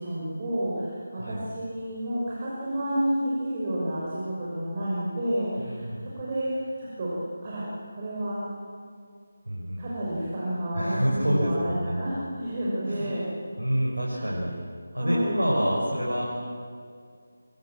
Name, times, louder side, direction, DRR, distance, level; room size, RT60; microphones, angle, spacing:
voice 1, 0.0-7.1 7.4-7.6 7.9-8.4 9.8-13.2 14.1-14.3 14.9-15.4, right 1 dB, 30° right, -7 dB, 6.1 m, -30 dB
voice 2, 5.6-6.1 9.5-9.9 10.7-12.1 12.9-13.1 13.6-14.5 14.9-16.2, equal, 90° right, -4 dB, 6.2 m, -27 dB
25.5 x 24.0 x 7.5 m, 2.2 s
figure-of-eight pair, 160°, 0 cm